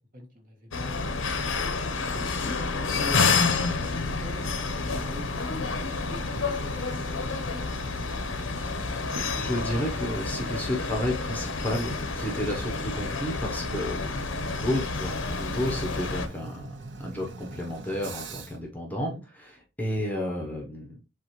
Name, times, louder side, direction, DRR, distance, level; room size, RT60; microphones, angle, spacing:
voice 1, 0.1-1.3 1.9-8.4 19.0-19.2, left 1 dB, 40° right, 1.3 m, -43 dB
sound 1, 0.7-16.3, left 4 dB, 75° left, 0.7 m, -29 dB
Toilet flush, 3.6-18.7, right 3 dB, 65° right, 0.6 m, -44 dB
voice 2, 9.4-14.2 14.6-19.1 19.4-19.5 19.8-21.0, left 1 dB, 10° left, 0.8 m, -31 dB
7.2 x 2.4 x 3.0 m
head